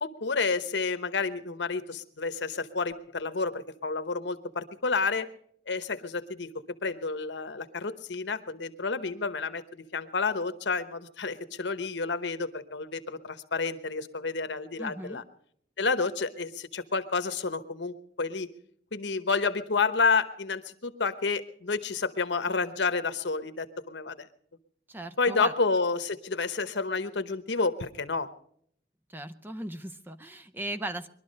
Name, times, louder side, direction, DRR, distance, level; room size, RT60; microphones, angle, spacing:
voice 1, 0.0-5.3 5.7-6.5 6.8-15.2 15.8-18.5 18.9-24.3 25.2-28.3, left 4 dB, 85° left, 11 dB, 1.0 m, -30 dB
voice 2, 14.8-15.2 24.9-25.5 29.1-31.1, right 1 dB, 10° right, 8 dB, 0.5 m, -37 dB
22.0 x 12.0 x 5.3 m, 0.64 s
head